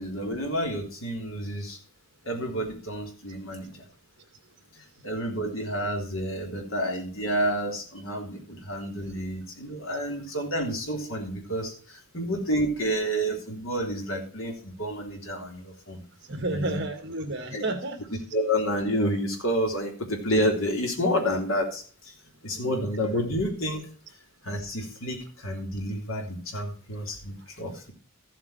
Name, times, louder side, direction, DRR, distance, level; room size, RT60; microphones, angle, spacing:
voice 1, 0.0-1.8 2.3-3.9 5.0-16.0 16.5-16.8 17.5-17.7 18.3-22.1 22.4-23.9 24.4-27.9, equal, 70° left, 2 dB, 3.4 m, -29 dB
voice 2, 16.3-18.1 22.5-22.8, right 2 dB, 50° right, 8 dB, 2.0 m, -31 dB
14.0 x 7.8 x 4.4 m, 0.40 s
head